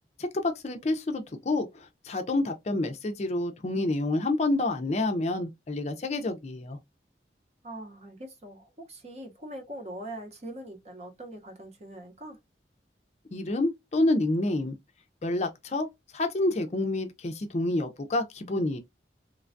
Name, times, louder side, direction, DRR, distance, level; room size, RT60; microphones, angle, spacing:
voice 1, 0.2-6.8 13.3-14.8 15.2-15.9 16.1-18.8, left 2 dB, 40° left, 0.5 m, -28 dB
voice 2, 7.6-12.4, right 1 dB, 35° right, 0.7 m, -42 dB
3.2 x 2.2 x 2.5 m
head